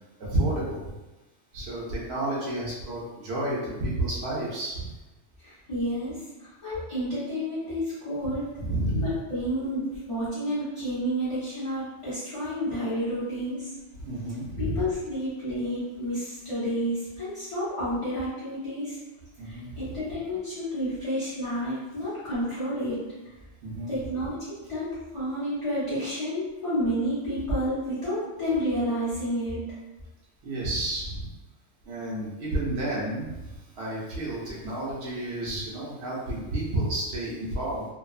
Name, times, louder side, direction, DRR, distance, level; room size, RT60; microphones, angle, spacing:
voice 1, 0.2-0.8 1.5-4.9 8.6-9.1 14.0-14.8 19.4-19.7 23.6-23.9 30.4-31.3 31.9-33.3 33.8-37.9, right 1 dB, 60° right, -6 dB, 0.8 m, -30 dB
voice 2, 5.4-8.5 8.9-13.7 14.6-19.0 19.4-23.0 23.9-29.6, equal, 30° left, -13 dB, 0.8 m, -30 dB
2.6 x 2.3 x 2.3 m, 1.1 s
omnidirectional pair, 1.4 m